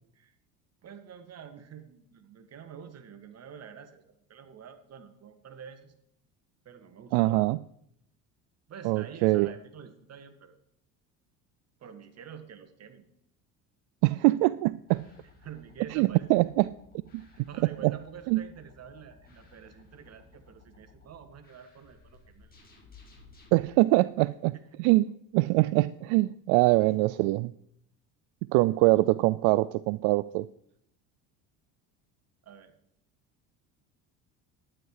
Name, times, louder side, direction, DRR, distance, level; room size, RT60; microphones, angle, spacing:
voice 1, 0.8-5.9 6.7-7.5 8.7-10.5 11.8-13.0 15.4-16.3 17.2-22.5 24.7-24.8 32.4-32.7, right 8 dB, 40° right, 8 dB, 1.8 m, -47 dB
voice 2, 7.1-7.6 8.8-9.5 14.0-15.1 15.9-16.7 17.1-17.2 17.8-18.0 18.3-18.4 23.5-27.5 28.5-30.5, right 20 dB, 75° right, 17 dB, 0.5 m, -24 dB
sound 1, 14.9-23.6, left 3 dB, 25° left, 4.9 m, -57 dB
12.0 x 9.7 x 4.8 m, 0.73 s
supercardioid pair, 95°, 38 cm